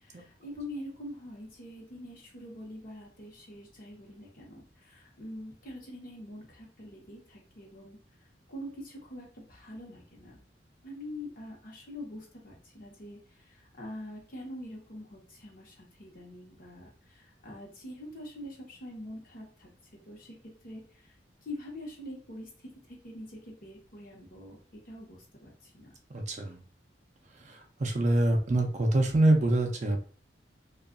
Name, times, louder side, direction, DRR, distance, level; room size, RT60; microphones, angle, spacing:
voice 1, 0.0-8.0 8.5-10.4 10.8-13.2 13.5-19.7 20.1-20.4 20.6-20.8 21.4-25.9, left 1 dB, 55° left, -1 dB, 0.9 m, -44 dB
voice 2, 26.1-26.6 27.4-30.0, right 1 dB, 40° right, 2 dB, 0.4 m, -25 dB
2.7 x 2.3 x 2.4 m, 0.40 s
head